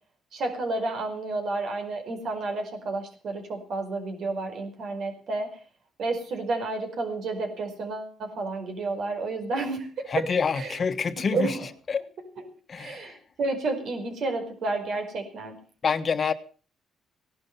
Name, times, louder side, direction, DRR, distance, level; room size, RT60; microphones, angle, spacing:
voice 1, 0.3-5.5 6.0-9.9 10.2-10.3 10.5-10.8 11.3-11.7 12.4-12.5 12.8-15.6, right 3 dB, 65° right, 5 dB, 5.2 m, -31 dB
voice 2, 10.1-11.6 11.9-12.0 12.7-13.1 15.8-16.3, left 5 dB, 45° left, 10 dB, 1.3 m, -26 dB
17.0 x 12.0 x 5.6 m, 0.40 s
cardioid pair, 90°, 0 cm